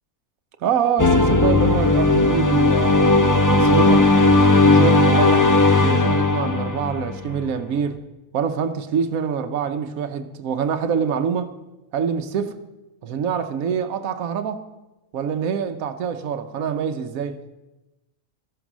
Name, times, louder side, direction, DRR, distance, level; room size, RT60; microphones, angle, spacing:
voice 1, 0.6-4.1 4.6-5.5 5.7-8.0 8.3-11.5 11.9-12.6 13.0-14.6 15.1-17.6, right 7 dB, 75° right, 1.3 m, -25 dB
sound 1, 1.0-7.4, left 2 dB, 15° left, 0.7 m, -16 dB
13.5 x 11.5 x 6.1 m
omnidirectional pair, 1.5 m